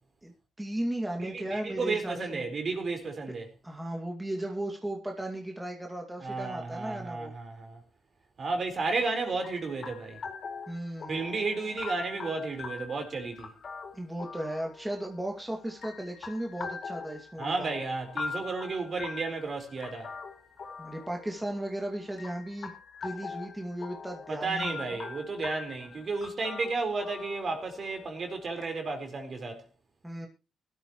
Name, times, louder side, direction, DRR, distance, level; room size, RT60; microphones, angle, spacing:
voice 1, 0.6-2.4 3.6-7.3 10.7-11.2 13.9-17.7 20.8-22.7 23.0-25.0 30.0-30.3, right 1 dB, 10° right, 2.3 m, -36 dB
voice 2, 1.2-3.5 6.2-7.8 8.4-10.2 11.1-13.5 17.4-20.1 24.3-29.7, right 3 dB, 45° right, 4.4 m, -33 dB
sound 1, 9.4-28.6, left 5 dB, 50° left, 4.1 m, -43 dB
18.5 x 13.0 x 3.1 m
cardioid pair, 90°, 0 cm